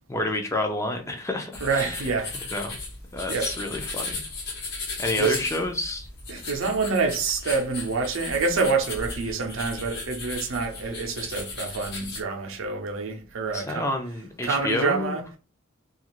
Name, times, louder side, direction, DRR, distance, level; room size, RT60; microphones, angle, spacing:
voice 1, 0.1-2.0 2.5-2.8 3.1-4.2 5.0-6.1 13.5-15.4, left 2 dB, 15° left, 0.4 m, -29 dB
sound 1, 1.5-12.2, left 3 dB, 50° left, 0.9 m, -36 dB
voice 2, 1.6-2.4 3.3-3.5 5.2-5.4 6.3-13.8 14.4-15.2, right 4 dB, 70° right, 0.6 m, -27 dB
2.4 x 2.4 x 2.9 m
head